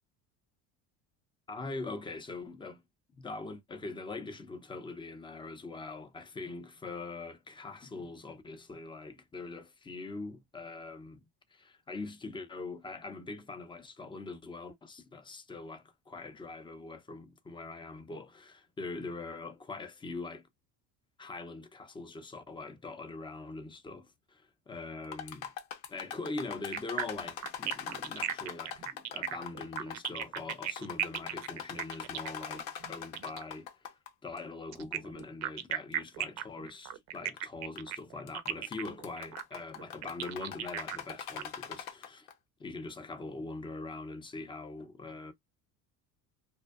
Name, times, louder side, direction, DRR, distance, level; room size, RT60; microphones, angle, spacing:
voice 1, 1.5-2.8 3.1-11.2 11.5-20.5 21.2-25.5 25.9-33.9 34.2-42.3 42.6-45.3, left 3 dB, 15° left, 0.4 m, -43 dB
sound 1, 25.0-34.1 34.4-34.5 35.2-35.3 35.9-36.0 37.1-37.4 37.8-38.0 38.3-42.3, left 8 dB, 65° left, 0.7 m, -42 dB
sound 2, 26.7-33.5 34.7-41.4, right 11 dB, 45° right, 0.4 m, -37 dB
2.6 x 2.0 x 2.3 m
supercardioid pair, 105°, 37 cm